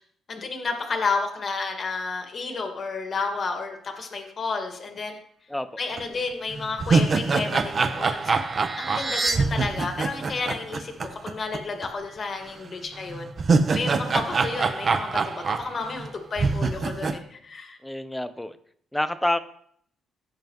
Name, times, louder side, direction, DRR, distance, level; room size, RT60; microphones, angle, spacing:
voice 1, 0.3-5.2 5.8-13.3 13.7-17.8, left 4 dB, 45° left, 3 dB, 1.8 m, -31 dB
voice 2, 5.5-5.8 17.8-18.6 18.9-19.4, left 1 dB, 5° left, 11 dB, 0.7 m, -27 dB
sound 1, 6.0-6.1 6.5-11.6 11.8-11.9 13.1-16.1 16.4-17.2, right 4 dB, 40° right, 0.9 m, -25 dB
sound 2, 7.1-9.3, right 3 dB, 20° right, 3.1 m, -32 dB
16.0 x 5.3 x 3.1 m, 0.64 s
cardioid pair, 90°, 0 cm